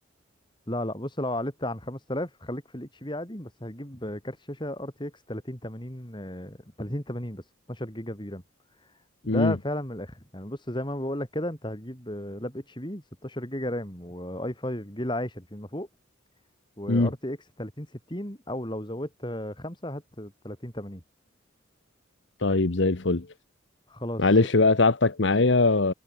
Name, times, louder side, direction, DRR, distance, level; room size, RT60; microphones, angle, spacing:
voice 1, 0.7-7.4 7.7-8.4 9.2-15.9 16.8-21.0 23.9-24.2, left 1 dB, 25° left, 6.2 m, -34 dB
voice 2, 22.4-23.3 24.2-25.9, left 3 dB, 65° left, 1.1 m, -21 dB
head